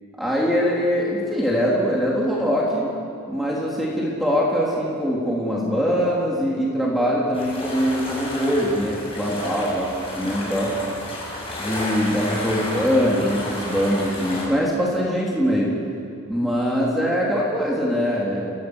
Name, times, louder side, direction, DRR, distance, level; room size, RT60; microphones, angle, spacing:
voice 1, 0.2-2.9 3.3-10.7 11.6-15.7 16.3-18.6, equal, ahead, -5 dB, 3.5 m, -22 dB
sound 1, 7.3-14.4, left 1 dB, 25° left, 7.3 m, -32 dB
29.5 x 17.5 x 8.1 m, 2.5 s
head